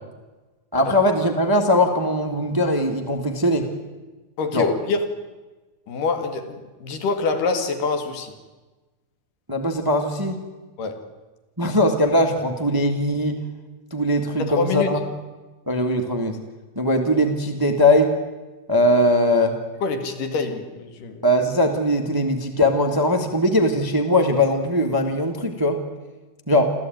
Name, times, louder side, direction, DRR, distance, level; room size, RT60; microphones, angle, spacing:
voice 1, 0.7-3.7 4.5-4.7 9.5-10.4 11.6-13.4 13.9-15.0 15.7-16.4 16.7-18.2 18.7-19.5 21.2-25.8 26.5-26.7, left 1 dB, 10° right, 5 dB, 1.0 m, -20 dB
voice 2, 4.4-5.2 5.9-8.3 10.8-11.1 14.4-15.0 19.8-21.3, left 4 dB, 80° left, 7 dB, 3.6 m, -25 dB
27.0 x 14.5 x 9.3 m, 1.2 s
omnidirectional pair, 3.7 m